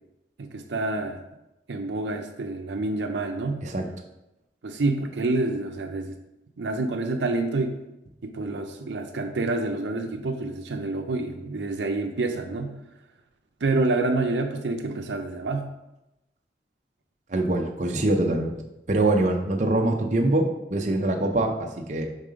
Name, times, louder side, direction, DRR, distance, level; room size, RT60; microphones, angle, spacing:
voice 1, 0.4-1.2 1.7-3.6 4.6-6.2 6.6-7.8 8.2-12.8 13.6-15.7, right 2 dB, 80° right, 5 dB, 0.6 m, -27 dB
voice 2, 17.3-18.6 18.9-22.1, right 2 dB, 40° right, 2 dB, 0.6 m, -24 dB
5.3 x 3.7 x 4.9 m, 0.92 s
head